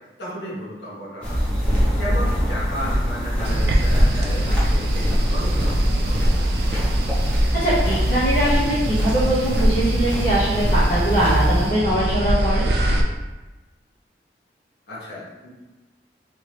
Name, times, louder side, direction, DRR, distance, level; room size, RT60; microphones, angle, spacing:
voice 1, 0.2-6.7 14.9-15.5, equal, 70° left, -8 dB, 1.4 m, -34 dB
sound 1, 1.2-11.7, equal, 5° left, 0.9 m, -22 dB
sound 2, 3.4-13.0, right 1 dB, 65° right, 0.4 m, -24 dB
voice 2, 7.5-12.7, right 1 dB, 50° left, -11 dB, 1.0 m, -22 dB
3.4 x 2.9 x 3.1 m, 1.1 s
head